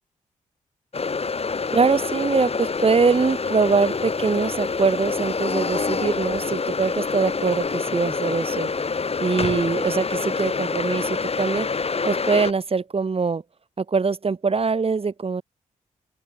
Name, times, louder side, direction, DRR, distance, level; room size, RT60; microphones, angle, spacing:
sound 1, 0.9-12.5, left 4 dB, 45° left, 6.8 m, -26 dB
voice 1, 1.7-8.7 9.2-13.4 13.8-15.4, right 4 dB, 45° right, 3.2 m, -23 dB
open air
cardioid pair, 60°, 14 cm